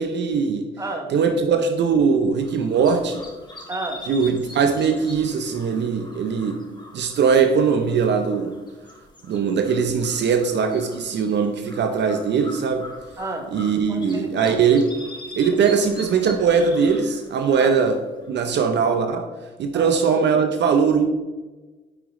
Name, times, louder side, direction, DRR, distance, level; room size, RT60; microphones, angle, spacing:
voice 1, 0.0-0.7 1.1-3.2 4.1-6.6 6.9-8.5 9.2-12.8 13.5-14.8 15.3-17.9 18.3-19.3 19.6-21.0, right 6 dB, 60° right, 6 dB, 0.7 m, -20 dB
voice 2, 0.8-1.1 3.7-4.1 13.2-13.5 13.9-14.6 17.6-17.7 18.4-18.5 19.7-19.9, right 2 dB, 15° right, 3 dB, 1.3 m, -31 dB
sound 1, 2.4-18.5, left 1 dB, 20° left, 1.6 m, -43 dB
9.8 x 4.9 x 3.1 m, 1.2 s
cardioid pair, 90°, 20 cm